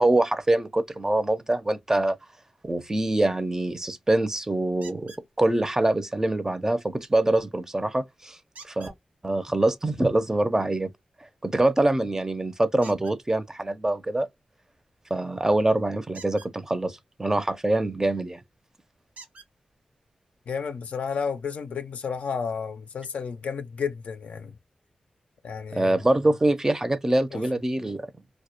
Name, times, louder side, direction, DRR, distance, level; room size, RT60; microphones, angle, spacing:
voice 1, 0.0-2.2 2.6-8.4 8.6-8.9 9.2-10.9 11.4-14.3 15.1-18.4 25.7-28.1, right 2 dB, 20° right, 0.4 m, -24 dB
sound 1, 4.8-5.3 8.5-9.0 12.8-13.2 16.1-16.5 18.2-18.3 19.1-19.5 20.5-20.6 21.1-21.2, right 4 dB, 85° right, 0.7 m, -47 dB
voice 2, 20.5-24.6 25.4-26.0 27.3-27.4, left 6 dB, 80° left, 0.5 m, -32 dB
2.2 x 2.0 x 2.8 m
cardioid pair, 55°, 2 cm